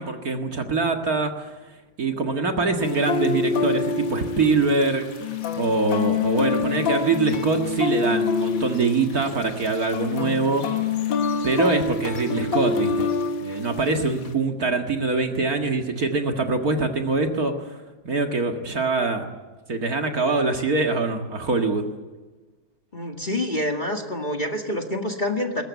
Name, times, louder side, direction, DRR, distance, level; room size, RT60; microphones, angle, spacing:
voice 1, 0.0-1.5 2.0-5.1 5.6-10.7 11.4-13.1 13.4-17.8 18.0-19.2 19.7-21.9, right 3 dB, 50° right, 4 dB, 2.2 m, -24 dB
sound 1, 2.8-14.3, left 4 dB, 75° left, 2.4 m, -26 dB
voice 2, 22.9-25.6, left 1 dB, 25° left, 3 dB, 2.0 m, -27 dB
22.0 x 19.5 x 9.3 m, 1.2 s
omnidirectional pair, 2.1 m